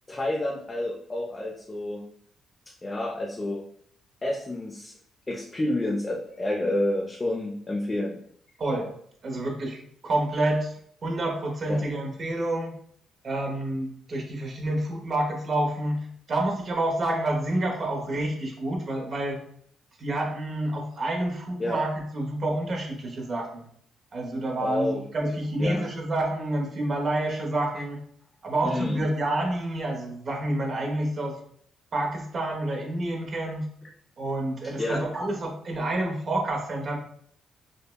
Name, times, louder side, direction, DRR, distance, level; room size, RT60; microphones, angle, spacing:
voice 1, 0.1-2.0 2.7-3.6 4.2-5.0 5.3-8.2 11.7-11.8 21.6-21.8 24.6-25.9 28.6-29.0 34.6-35.0, left 1 dB, 20° left, -1 dB, 0.5 m, -29 dB
voice 2, 8.6-8.9 9.2-10.7 11.0-12.7 13.2-19.4 20.0-23.6 24.1-28.0 28.4-31.4 31.9-33.6 34.2-37.0, right 1 dB, 45° right, 0 dB, 0.8 m, -28 dB
5.1 x 2.1 x 2.2 m, 0.64 s
cardioid pair, 90°, 0 cm